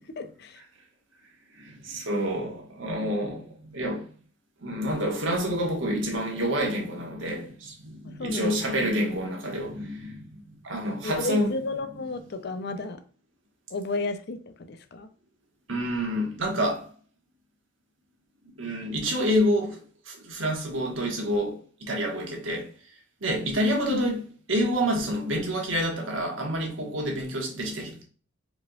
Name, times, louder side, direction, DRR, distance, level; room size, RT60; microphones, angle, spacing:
voice 1, 0.2-0.6 8.2-8.6 11.0-13.0 13.7-15.1, left 2 dB, 55° left, 0.6 m, -33 dB
voice 2, 1.5-4.1 4.6-11.6 15.7-16.9 18.6-22.7 23.2-28.0, equal, 75° right, 1.5 m, -28 dB
4.8 x 4.3 x 2.4 m
head